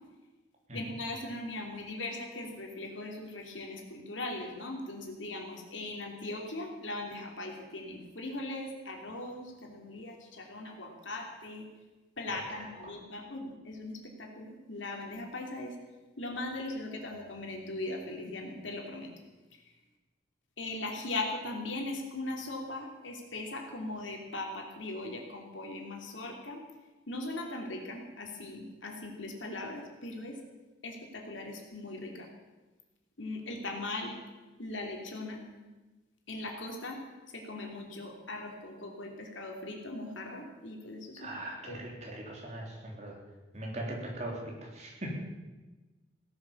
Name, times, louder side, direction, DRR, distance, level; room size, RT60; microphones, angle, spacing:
voice 1, 0.7-11.7 12.2-15.8 16.2-19.1 19.5-19.6 20.6-26.6 27.1-30.4 30.8-32.3 33.2-34.1 34.6-35.4 36.3-37.0 37.3-41.3 41.6-41.8 42.0-42.1, left 2 dB, 80° left, 2 dB, 3.1 m, -39 dB
voice 2, 41.2-43.2 43.5-45.2, right 1 dB, 35° right, -1 dB, 3.6 m, -39 dB
17.0 x 11.0 x 7.2 m, 1.2 s
head